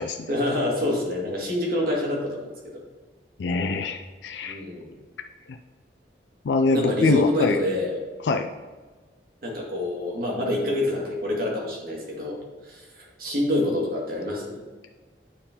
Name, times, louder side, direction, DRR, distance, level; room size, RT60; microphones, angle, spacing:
voice 1, 0.3-2.8 4.4-4.9 6.7-7.9 9.4-14.6, left 1 dB, 55° right, -2 dB, 2.0 m, -27 dB
voice 2, 3.4-4.6 5.5-5.6 6.4-7.6 8.3-8.5, left 3 dB, 80° left, 6 dB, 0.4 m, -24 dB
9.9 x 4.6 x 3.7 m, 1.4 s
head